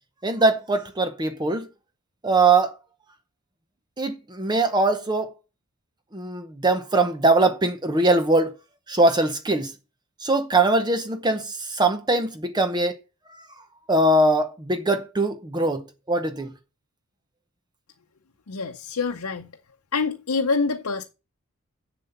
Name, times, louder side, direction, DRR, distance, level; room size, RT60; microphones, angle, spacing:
voice 1, 0.2-1.7 2.2-2.7 4.0-5.3 6.1-8.5 8.9-9.7 10.2-12.9 13.3-13.4 13.9-16.5, right 2 dB, 20° right, 0.8 m, -21 dB
voice 2, 18.5-19.5 19.9-21.0, left 4 dB, 90° left, 0.7 m, -26 dB
7.5 x 6.9 x 5.6 m
head